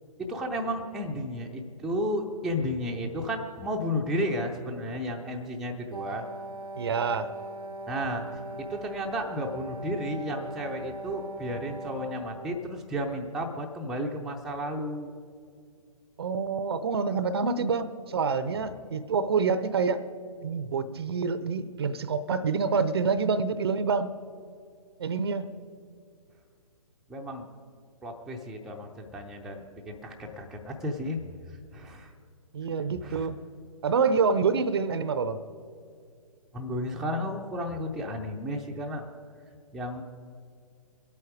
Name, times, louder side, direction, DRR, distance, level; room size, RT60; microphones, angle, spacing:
voice 1, 0.2-6.2 7.9-8.3 8.7-15.1 18.6-18.8 27.1-27.5 28.0-31.2 31.5-32.1 33.0-33.3 36.5-39.0 39.7-40.0, equal, ahead, 0 dB, 0.6 m, -33 dB
Wind instrument woodwind instrument, 5.9-12.7, right 2 dB, 85° right, 0.7 m, -40 dB
voice 2, 6.8-7.3 16.2-20.0 20.4-24.1 25.0-25.5 32.5-33.4 33.8-35.4, right 5 dB, 45° right, 15 dB, 0.6 m, -27 dB
23.5 x 8.6 x 4.9 m, 2.3 s
figure-of-eight pair, 130°, 19 cm